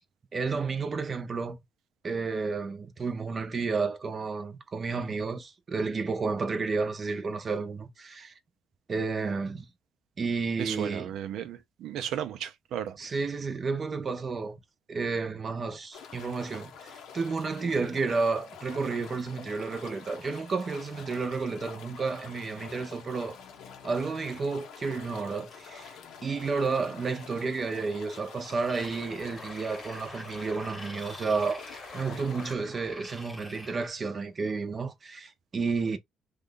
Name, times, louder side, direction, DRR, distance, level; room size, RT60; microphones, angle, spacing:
voice 1, 0.3-1.6 2.0-8.3 8.9-9.7 10.2-11.1 13.0-14.6 14.9-23.4 23.8-31.6 31.9-36.0, right 4 dB, 40° right, 0.7 m, -31 dB
voice 2, 10.6-13.0, right 10 dB, 80° right, 0.6 m, -34 dB
sound 1, 15.9-32.5, left 6 dB, 85° left, 0.8 m, -47 dB
sound 2, 28.7-33.9, left 1 dB, 10° left, 1.1 m, -45 dB
3.0 x 2.4 x 3.8 m
cardioid pair, 100°, 0 cm